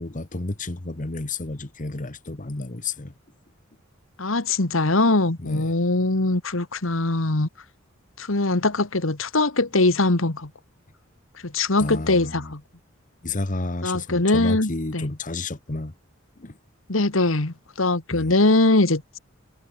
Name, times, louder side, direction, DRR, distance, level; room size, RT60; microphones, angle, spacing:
voice 1, 0.0-3.1 5.4-5.7 11.8-12.5 13.2-15.9 16.4-16.6 18.1-18.3, left 2 dB, 40° left, 1.3 m, -31 dB
voice 2, 4.2-7.5 8.2-10.5 11.4-12.6 13.8-15.1 16.9-19.2, left 2 dB, 75° left, 1.9 m, -22 dB
head